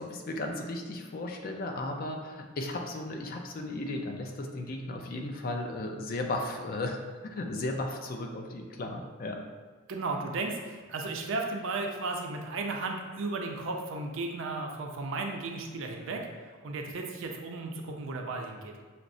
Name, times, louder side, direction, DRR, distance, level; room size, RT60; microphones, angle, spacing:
voice 1, 0.0-7.0 7.2-9.4, left 2 dB, 45° left, 3 dB, 0.4 m, -35 dB
voice 2, 9.9-18.7, right 3 dB, 60° right, 2 dB, 0.5 m, -35 dB
5.7 x 2.0 x 2.5 m, 1.5 s
head